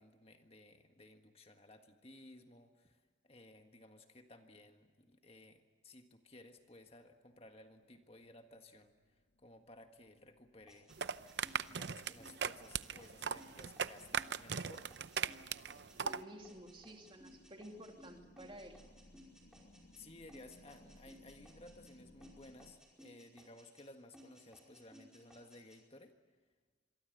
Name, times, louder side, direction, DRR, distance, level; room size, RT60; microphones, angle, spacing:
voice 1, 0.0-10.9 11.5-15.0 19.9-26.2, left 2 dB, 30° left, 5 dB, 1.6 m, -58 dB
sound 1, 7.8-22.7, left 1 dB, 80° left, 2.2 m, -65 dB
sound 2, 10.7-20.0 20.3-21.9 22.2-23.9 24.1-25.8, equal, 5° right, 5.2 m, -61 dB
sound 3, 10.9-16.2, right 7 dB, 65° right, 0.7 m, -39 dB
voice 2, 15.9-18.8, equal, 30° right, 4 dB, 2.5 m, -52 dB
26.5 x 23.0 x 8.1 m, 1.4 s
head